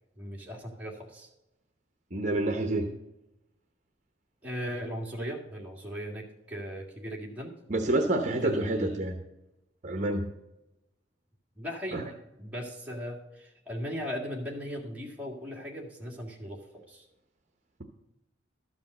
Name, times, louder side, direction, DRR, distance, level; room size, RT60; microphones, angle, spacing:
voice 1, 0.2-1.3 4.4-7.6 8.4-9.0 11.6-17.1, equal, 10° right, -2 dB, 1.9 m, -38 dB
voice 2, 2.1-2.9 7.7-9.1 9.8-10.3 11.9-12.0, right 2 dB, 40° right, 4 dB, 0.8 m, -28 dB
12.5 x 5.2 x 6.5 m, 0.93 s
head